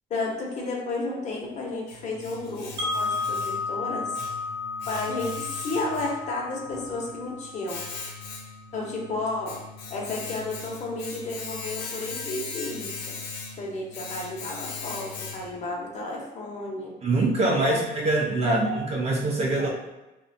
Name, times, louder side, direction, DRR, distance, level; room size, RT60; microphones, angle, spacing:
voice 1, 0.1-2.7 2.9-4.2 4.9-7.8 8.7-9.6 9.9-13.1 13.6-16.9 17.6-17.8 18.5-18.8 19.5-19.7, left 2 dB, 45° left, -2 dB, 0.7 m, -32 dB
Domestic sounds home sounds, 1.4-15.7, left 4 dB, 90° left, 0.5 m, -39 dB
Wind chime, 2.8-8.8, left 4 dB, 85° right, 0.7 m, -33 dB
voice 2, 17.0-19.7, right 2 dB, 40° right, -1 dB, 0.5 m, -24 dB
2.6 x 2.1 x 2.6 m, 1.0 s
cardioid pair, 110°, 17 cm